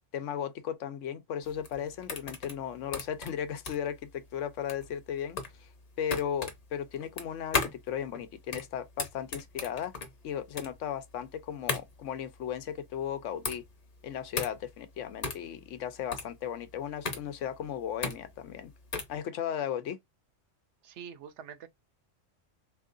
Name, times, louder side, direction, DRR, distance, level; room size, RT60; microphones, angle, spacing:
voice 1, 0.0-5.7 6.0-9.9 10.2-13.6 14.0-18.7 19.1-20.0, left 9 dB, 85° left, 1.0 m, -36 dB
sound 1, 1.4-19.2, left 4 dB, 35° left, 0.8 m, -37 dB
voice 2, 20.8-21.7, right 8 dB, 70° right, 0.9 m, -45 dB
3.5 x 3.0 x 2.5 m
omnidirectional pair, 1.2 m